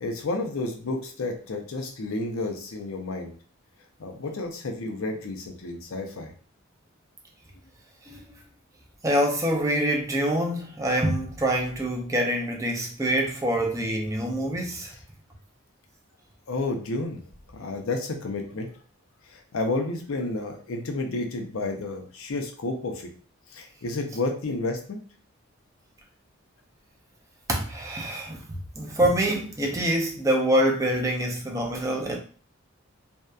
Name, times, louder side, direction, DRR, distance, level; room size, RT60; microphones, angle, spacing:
voice 1, 0.0-3.3 4.0-6.3 16.5-17.2 17.5-18.7 19.3-23.1 23.5-25.0, left 2 dB, 85° left, 0.5 m, -31 dB
voice 2, 9.0-14.9 27.5-32.2, right 1 dB, 15° right, 0.4 m, -25 dB
2.6 x 2.1 x 2.3 m
head